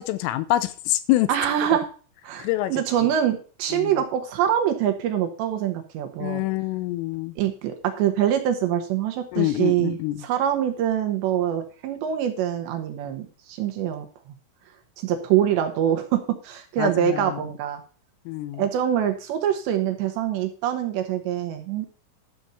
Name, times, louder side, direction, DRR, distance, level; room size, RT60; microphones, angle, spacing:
voice 1, 0.0-1.3 2.4-2.7 3.7-4.0 6.2-7.3 9.3-10.2 16.8-17.4 18.3-18.6, left 16 dB, 90° left, 3.3 m, -26 dB
voice 2, 1.3-1.9 2.2-6.4 7.4-14.3 15.0-17.8 18.6-21.9, right 10 dB, 75° right, 2.9 m, -24 dB
12.0 x 5.3 x 6.9 m
omnidirectional pair, 5.8 m